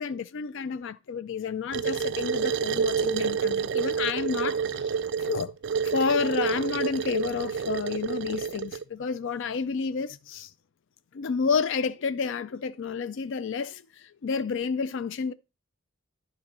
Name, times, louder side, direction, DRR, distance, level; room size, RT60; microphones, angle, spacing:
voice 1, 0.0-5.5 5.8-10.5 11.1-15.3, left 5 dB, 65° left, 0.4 m, -30 dB
sound 1, 1.7-8.8, right 6 dB, 60° right, 0.4 m, -28 dB
11.5 x 3.9 x 5.3 m
head